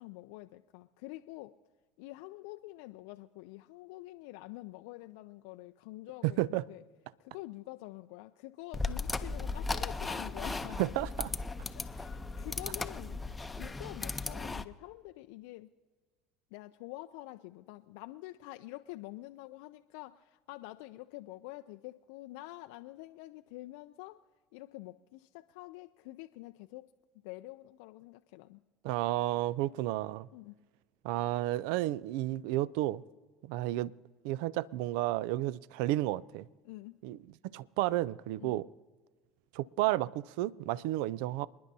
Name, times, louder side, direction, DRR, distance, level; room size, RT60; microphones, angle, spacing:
voice 1, 0.0-1.6 2.0-6.8 7.2-10.8 11.8-13.2 13.6-15.7 16.5-24.2 24.5-26.9 27.2-28.6 30.3-30.6 36.6-36.9 38.4-38.6, left 19 dB, 70° left, 0.4 m, -47 dB
voice 2, 6.2-6.6 10.8-11.3 28.8-30.3 31.0-33.0 33.4-33.9 34.2-36.5 37.0-37.2 37.5-38.7 39.5-41.5, right 16 dB, 70° right, 0.3 m, -32 dB
sound 1, 8.7-14.7, left 3 dB, 15° left, 0.7 m, -36 dB
28.0 x 10.5 x 2.7 m
hypercardioid pair, 80°, 0 cm